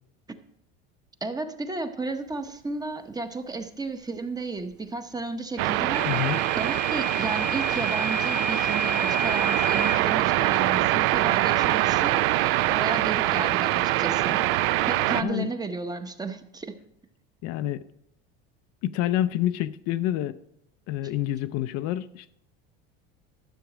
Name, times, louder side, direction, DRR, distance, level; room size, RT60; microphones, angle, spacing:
voice 1, 1.2-6.1 6.6-14.4 14.9-16.7, right 3 dB, 15° right, 0.8 m, -33 dB
sound 1, 5.6-15.2, right 16 dB, 75° right, 0.5 m, -24 dB
Microwave oven / Alarm, 5.9-10.0, right 2 dB, 50° right, 1.2 m, -30 dB
voice 2, 6.1-6.4 15.2-15.5 17.4-17.8 18.8-20.3 20.9-22.3, left 12 dB, 55° left, 0.5 m, -27 dB
12.5 x 7.0 x 4.9 m
supercardioid pair, 120°, 29 cm